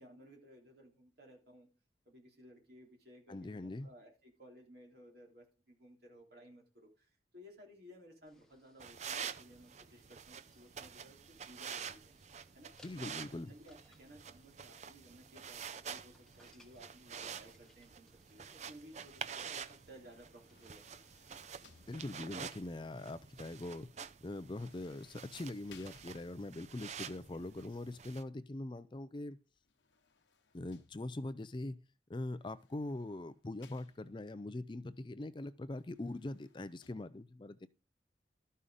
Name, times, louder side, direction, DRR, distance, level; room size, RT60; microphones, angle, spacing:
voice 1, 0.0-1.7 2.0-12.1 12.5-20.9 27.3-27.8, equal, 55° right, 3.5 m, -58 dB
voice 2, 3.3-3.9 12.8-13.5 21.9-23.9 24.2-29.4 30.5-31.8 32.1-37.7, left 2 dB, 25° left, 0.4 m, -42 dB
sound 1, 8.3-22.4, left 1 dB, 5° left, 1.3 m, -70 dB
sound 2, 8.8-28.2, right 7 dB, 40° right, 0.5 m, -48 dB
sound 3, 20.1-22.5 24.4-26.7 29.5-31.4 32.4-34.4 35.7-36.9, left 5 dB, 80° left, 1.1 m, -65 dB
12.5 x 5.6 x 5.0 m
head